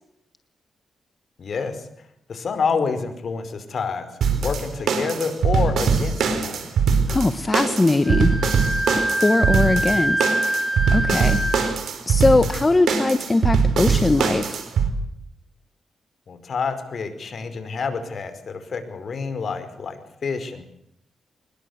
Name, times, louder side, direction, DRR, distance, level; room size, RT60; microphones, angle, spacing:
voice 1, 1.4-1.9 2.3-4.1 4.4-6.7 16.3-20.6, left 5 dB, 55° left, 10 dB, 4.9 m, -28 dB
sound 1, 4.2-14.9, right 5 dB, 80° right, 4.2 m, -22 dB
voice 2, 7.1-8.4 9.1-11.4 12.1-14.6, left 2 dB, 25° left, 10 dB, 1.3 m, -21 dB
Wind instrument woodwind instrument, 8.0-11.8, right 1 dB, 5° right, 6.1 m, -25 dB
25.0 x 21.0 x 8.2 m, 0.75 s
cardioid pair, 90°, 0 cm